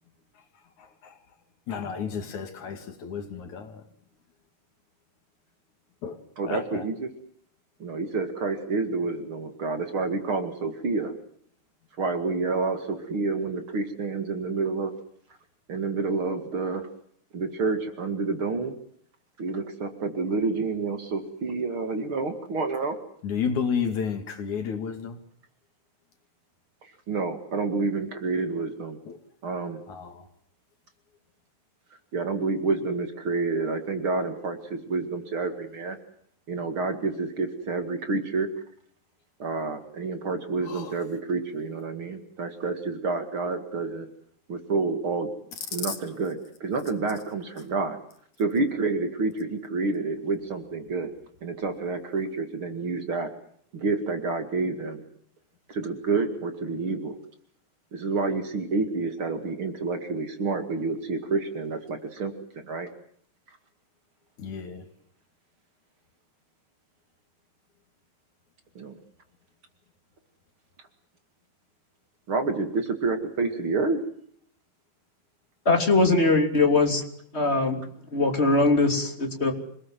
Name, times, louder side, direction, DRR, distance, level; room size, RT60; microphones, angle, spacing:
voice 1, 0.8-1.2 1.7-3.8 6.0-6.2 6.5-6.9 23.2-25.2 29.1-29.2 29.9-30.3 40.6-40.9 45.9-46.0 64.4-64.9, left 6 dB, 75° left, 7 dB, 3.9 m, -32 dB
voice 2, 6.4-7.1 7.8-11.1 12.0-14.9 15.7-16.9 17.3-18.8 19.4-23.0 26.8-29.0 29.4-29.8 32.1-36.0 36.5-38.5 39.4-44.1 44.5-45.3 45.7-48.0 48.4-51.1 51.4-53.3 53.7-55.0 55.7-57.2 57.9-62.9 68.8-69.0 72.3-74.0, right 3 dB, 45° right, 7 dB, 2.8 m, -29 dB
voice 3, 75.6-77.0 77.3-77.8 78.1-79.5, left 3 dB, 20° left, 4 dB, 3.2 m, -21 dB
27.5 x 19.5 x 7.7 m, 0.64 s
omnidirectional pair, 3.4 m